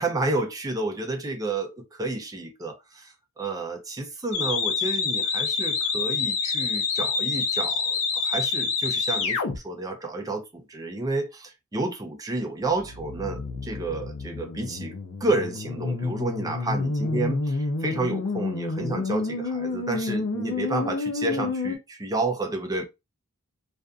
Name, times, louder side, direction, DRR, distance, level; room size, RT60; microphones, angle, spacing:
voice 1, 0.0-14.9 15.2-17.4 17.8-22.8, right 2 dB, 15° right, 0.5 m, -30 dB
sound 1, 4.3-9.6 12.7-21.8, left 4 dB, 75° left, 0.6 m, -28 dB
2.5 x 2.4 x 2.3 m
head